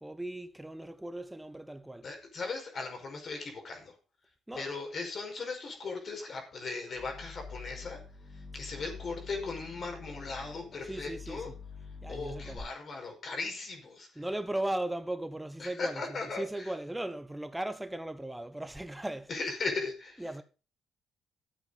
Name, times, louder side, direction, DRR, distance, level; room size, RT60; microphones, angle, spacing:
voice 1, 0.0-2.1 4.5-4.7 10.9-11.4 12.0-12.7 14.2-16.0 16.4-19.3 20.2-20.4, right 1 dB, 5° right, 1.1 m, -37 dB
voice 2, 2.0-4.0 4.5-8.0 8.3-11.5 12.1-14.2 15.6-16.7 19.3-20.3, left 3 dB, 50° left, 5.4 m, -38 dB
sound 1, 7.0-12.6, left 5 dB, 30° left, 2.7 m, -46 dB
12.5 x 8.3 x 5.2 m
cardioid pair, 90°, 0 cm